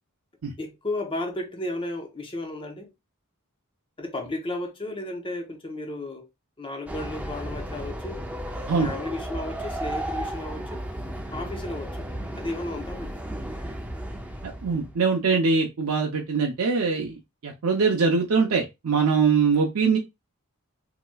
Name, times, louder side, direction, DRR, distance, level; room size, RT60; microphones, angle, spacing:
voice 1, 0.6-2.9 4.0-6.3 6.6-8.2 8.8-10.8 11.3-12.1 12.3-13.1, left 2 dB, 25° left, 0.7 m, -33 dB
Train, 6.9-15.0, right 1 dB, 5° right, 0.4 m, -34 dB
voice 2, 14.4-17.2 17.4-20.0, right 5 dB, 85° right, 0.6 m, -23 dB
3.1 x 2.8 x 2.2 m
head